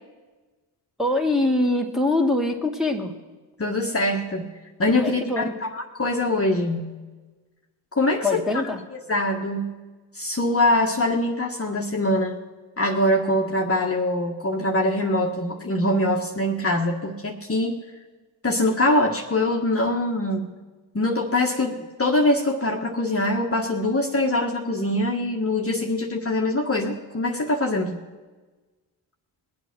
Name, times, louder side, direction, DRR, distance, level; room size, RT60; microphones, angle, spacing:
voice 1, 1.0-3.1 5.0-5.5 8.2-8.8, left 2 dB, ahead, 0 dB, 2.1 m, -23 dB
voice 2, 3.6-4.5 4.8-6.9 7.9-8.7 9.1-9.7 10.1-12.4 12.8-17.7 18.4-20.5 20.9-28.0, left 1 dB, 25° left, 0 dB, 1.6 m, -23 dB
20.5 x 8.3 x 6.1 m, 1.3 s
supercardioid pair, 55°, 49 cm